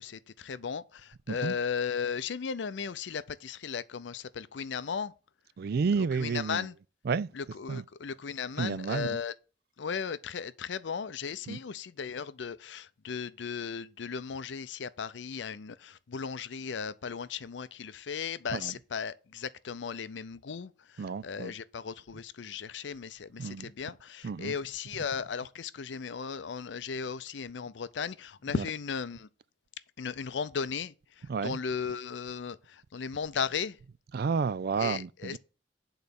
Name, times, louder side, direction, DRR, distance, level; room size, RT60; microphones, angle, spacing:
voice 1, 0.0-5.1 6.0-6.8 7.3-9.3 9.8-29.3 30.0-33.8 34.8-35.4, left 6 dB, 80° left, 0.5 m, -36 dB
voice 2, 5.6-6.7 7.1-7.3 7.7-7.8 8.6-9.2 11.5-11.6 18.5-18.7 21.0-21.5 23.4-23.7 24.2-24.5 28.5-28.6 31.3-31.6 34.1-35.4, right 5 dB, 60° right, 0.4 m, -31 dB
10.0 x 4.0 x 6.9 m
head